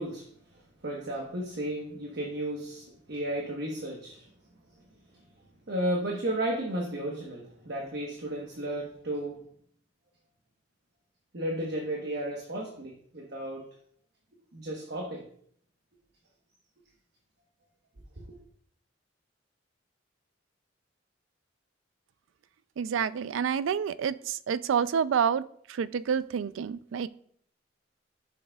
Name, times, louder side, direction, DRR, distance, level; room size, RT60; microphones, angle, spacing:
voice 1, 0.0-4.3 4.8-4.9 5.7-9.4 11.3-13.6 14.5-15.2, right 1 dB, 60° right, -1 dB, 1.1 m, -34 dB
voice 2, 22.8-25.4 25.7-27.1, right 7 dB, 85° right, 16 dB, 0.4 m, -28 dB
12.0 x 6.4 x 2.3 m, 0.63 s
head